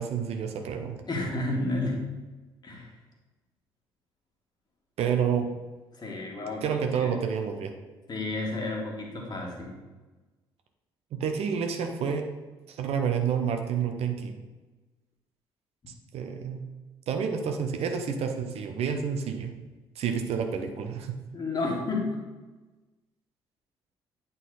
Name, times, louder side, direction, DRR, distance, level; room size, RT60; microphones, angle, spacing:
voice 1, 0.0-1.0 5.0-5.5 6.6-7.7 11.1-12.2 12.7-14.3 16.1-16.6 17.1-19.5 20.0-21.1, right 7 dB, 55° right, 5 dB, 0.8 m, -29 dB
voice 2, 1.1-2.0 2.6-2.9 5.9-7.1 8.1-9.7 21.3-22.2, left 2 dB, 35° left, -1 dB, 2.0 m, -31 dB
9.0 x 4.1 x 4.0 m, 1.2 s
figure-of-eight pair, 45°, 13 cm